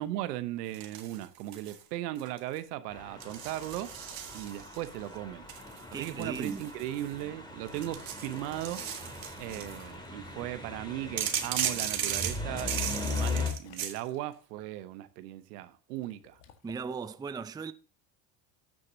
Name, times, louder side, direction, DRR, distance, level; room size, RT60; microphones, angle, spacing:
voice 1, 0.0-3.9 4.3-5.5 5.9-8.9 9.4-16.4, right 14 dB, 85° right, 1.0 m, -37 dB
sound 1, 0.7-1.8 2.2-2.6 3.2-4.9 5.5-7.2 7.7-9.8 11.2-14.0, right 9 dB, 45° right, 1.7 m, -36 dB
sound 2, 2.9-13.5, left 4 dB, 10° left, 2.6 m, -39 dB
voice 2, 5.9-6.7 16.6-17.7, right 5 dB, 10° right, 0.4 m, -37 dB
Water / Liquid, 9.9-12.4 13.4-14.5 16.0-16.9, left 9 dB, 65° left, 1.7 m, -55 dB
13.5 x 6.5 x 2.8 m
supercardioid pair, 90°, 47 cm